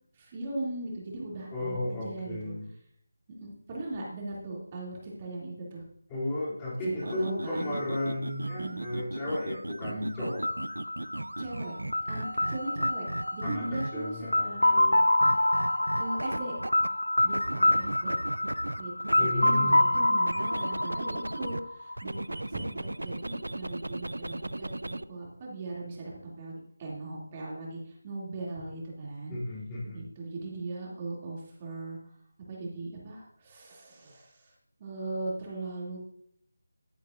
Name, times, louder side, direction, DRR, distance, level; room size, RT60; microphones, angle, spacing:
voice 1, 0.1-2.5 3.4-5.8 7.0-7.7 8.6-8.8 9.8-10.1 11.4-11.7 12.0-14.7 16.0-16.5 17.2-18.2 18.8-29.3 29.9-32.0 32.5-34.5 34.8-36.0, right 2 dB, 25° right, -4 dB, 2.6 m, -39 dB
voice 2, 1.5-2.7 6.1-10.4 13.4-15.0 17.6-17.9 19.1-19.8 29.3-30.1, left 1 dB, 15° left, -7 dB, 3.0 m, -34 dB
sound 1, 7.0-14.2 15.2-16.9 17.2-21.6 22.0-25.0, right 1 dB, 85° right, 0.5 m, -37 dB
sound 2, 10.4-22.2, left 1 dB, 90° left, 0.4 m, -27 dB
14.0 x 8.2 x 2.6 m, 0.68 s
figure-of-eight pair, 160°, 0 cm